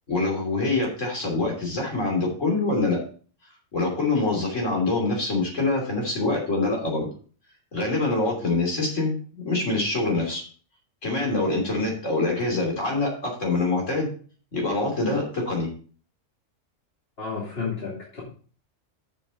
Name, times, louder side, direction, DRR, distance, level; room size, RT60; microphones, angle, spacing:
voice 1, 0.1-3.0 3.7-7.1 7.7-9.2 9.5-10.4 11.0-14.1 14.5-15.7, left 2 dB, 70° left, -1 dB, 3.5 m, -25 dB
voice 2, 17.2-18.2, left 5 dB, 50° left, -6 dB, 2.9 m, -31 dB
9.8 x 7.1 x 4.1 m, 0.41 s
omnidirectional pair, 1.3 m